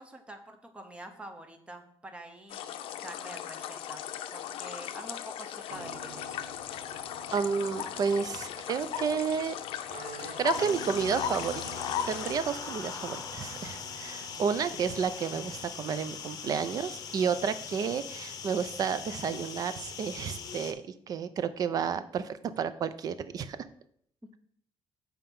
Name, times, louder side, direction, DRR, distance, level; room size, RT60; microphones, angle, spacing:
voice 1, 0.0-6.4 8.8-9.2, right 1 dB, 10° right, 6 dB, 0.8 m, -47 dB
sound 1, 2.5-12.3, left 10 dB, 75° left, 0.5 m, -37 dB
sound 2, 5.7-15.8, right 2 dB, 85° right, 1.7 m, -47 dB
voice 2, 7.3-9.6 10.4-11.7 12.1-20.8 21.1-23.6, right 6 dB, 40° right, 13 dB, 0.5 m, -31 dB
sound 3, 10.5-20.7, left 6 dB, 40° left, 0.8 m, -41 dB
7.7 x 4.4 x 5.4 m, 0.65 s
cardioid pair, 170°, 9 cm